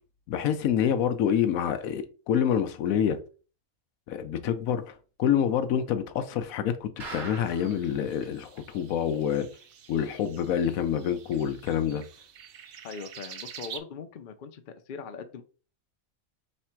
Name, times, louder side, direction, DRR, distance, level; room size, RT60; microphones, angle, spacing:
voice 1, 0.3-3.2 4.1-9.5 9.9-12.0, left 9 dB, 85° left, 1.1 m, -27 dB
sound 1, 7.0-7.8 8.2-8.3 8.6-8.7 9.1-9.2, right 3 dB, 40° right, 1.2 m, -40 dB
sound 2, 7.2-13.8, right 8 dB, 60° right, 0.6 m, -47 dB
voice 2, 12.8-15.4, left 6 dB, 50° left, 0.6 m, -41 dB
3.4 x 3.2 x 4.4 m
omnidirectional pair, 1.4 m